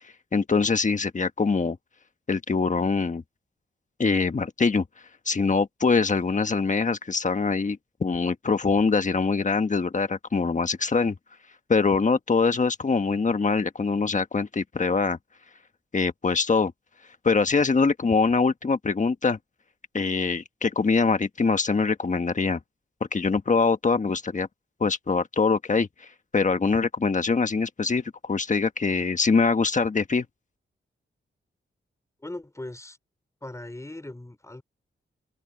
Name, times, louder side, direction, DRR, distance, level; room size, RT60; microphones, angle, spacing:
voice 1, 0.3-1.8 2.3-3.2 4.0-4.8 5.3-11.1 11.7-15.2 15.9-16.7 17.2-19.4 19.9-22.6 23.1-24.5 24.8-25.9 26.3-30.3, left 4 dB, 40° left, 1.4 m, -23 dB
voice 2, 32.2-33.0 33.4-34.6, left 1 dB, 15° left, 3.8 m, -39 dB
open air
wide cardioid pair, 95°, 20 cm